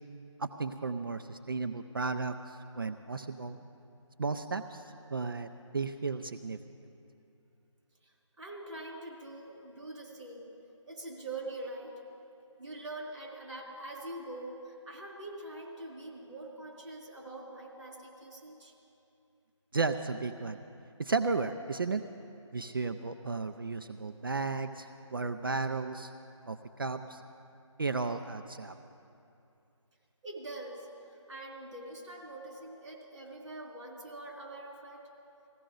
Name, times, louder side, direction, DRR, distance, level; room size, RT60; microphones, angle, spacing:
voice 1, 0.4-3.6 4.2-4.8 5.1-6.6 19.7-20.6 21.0-22.0 22.5-26.1 26.5-27.2 27.8-28.7, right 4 dB, 45° right, 8 dB, 0.4 m, -34 dB
voice 2, 8.0-10.5 10.8-11.9 12.6-18.7 30.2-35.0, right 2 dB, 60° right, -2 dB, 3.6 m, -44 dB
20.0 x 15.0 x 3.8 m, 2.7 s
figure-of-eight pair, 170°, 16 cm